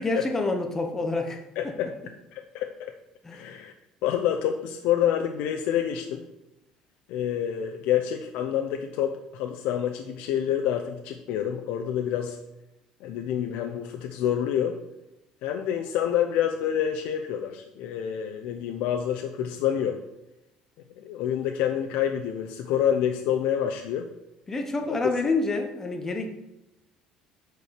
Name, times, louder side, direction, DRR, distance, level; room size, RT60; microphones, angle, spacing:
voice 1, 0.0-1.4 3.2-3.5 24.5-26.3, left 3 dB, 20° left, 4 dB, 1.1 m, -27 dB
voice 2, 1.6-1.9 2.3-2.9 3.3-3.7 4.0-6.2 7.1-12.4 13.0-14.8 15.4-20.0 21.0-24.1 24.9-25.0, left 9 dB, 75° left, 4 dB, 0.7 m, -27 dB
8.2 x 4.6 x 6.6 m, 0.90 s
cardioid pair, 125°, 2 cm